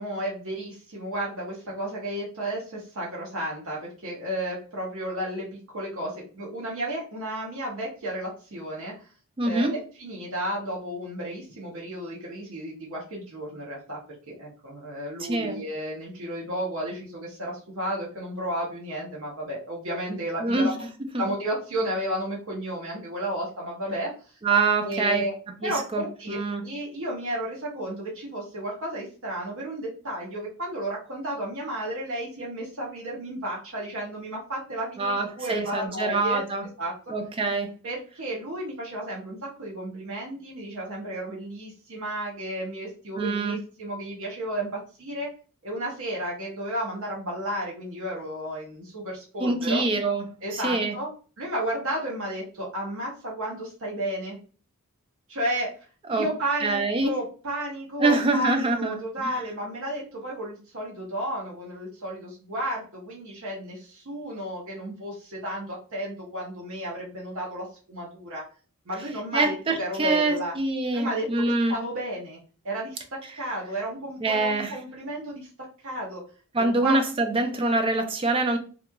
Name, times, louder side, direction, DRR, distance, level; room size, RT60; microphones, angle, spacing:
voice 1, 0.0-9.1 9.4-14.0 14.3-20.7 21.2-24.4 24.8-25.3 25.6-36.4 36.8-36.9 37.8-45.3 45.6-49.8 50.4-51.1 51.4-54.4 55.3-55.7 56.1-68.4 68.9-70.5 70.9-72.4 72.6-73.0 73.3-75.5 75.8-76.2 76.8-77.0, right 1 dB, 65° right, -4 dB, 0.7 m, -33 dB
voice 2, 9.4-9.7 15.2-15.6 20.4-20.7 21.1-21.2 24.4-25.2 25.6-26.6 35.0-36.6 37.1-37.7 43.2-43.6 49.4-50.2 50.5-50.9 56.1-56.3 56.6-57.1 58.0-59.4 69.3-71.8 74.2-74.8 76.5-78.6, right 3 dB, 25° right, 5 dB, 0.4 m, -25 dB
2.9 x 2.4 x 2.2 m, 0.39 s
head